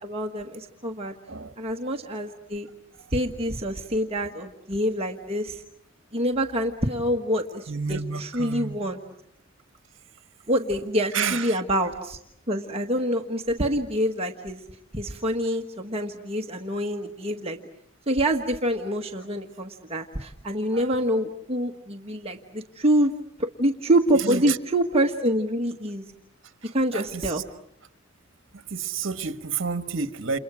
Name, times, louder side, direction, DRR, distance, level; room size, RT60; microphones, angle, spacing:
voice 1, 0.0-1.1 1.6-2.7 3.1-5.6 6.1-9.0 10.5-12.2 12.5-14.6 14.9-17.6 18.1-23.1 23.4-26.0 26.7-27.4, equal, 30° right, 3 dB, 1.4 m, -26 dB
voice 2, 7.7-8.9 11.1-11.6 20.7-21.0 24.1-24.6 26.6-27.4 28.5-30.4, right 5 dB, 60° right, 10 dB, 1.5 m, -30 dB
29.5 x 29.0 x 6.2 m, 0.73 s
head